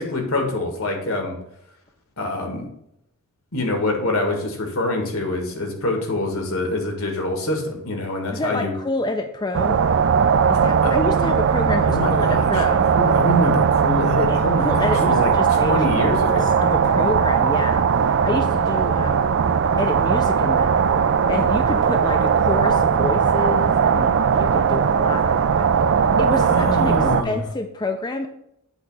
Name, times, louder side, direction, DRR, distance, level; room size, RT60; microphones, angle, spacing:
voice 1, 0.0-1.4 2.2-2.7 3.5-8.7 10.8-10.9 11.9-12.6 12.9-16.5 26.4-27.4, left 1 dB, 75° left, 3 dB, 1.7 m, -25 dB
voice 2, 8.3-9.8 10.5-12.9 14.3-19.3 19.8-20.8 21.3-25.7 26.0-28.3, left 2 dB, 20° left, 5 dB, 0.4 m, -28 dB
sound 1, 9.5-27.2, right 6 dB, 55° right, 0.3 m, -19 dB
8.0 x 3.2 x 6.1 m, 0.77 s
head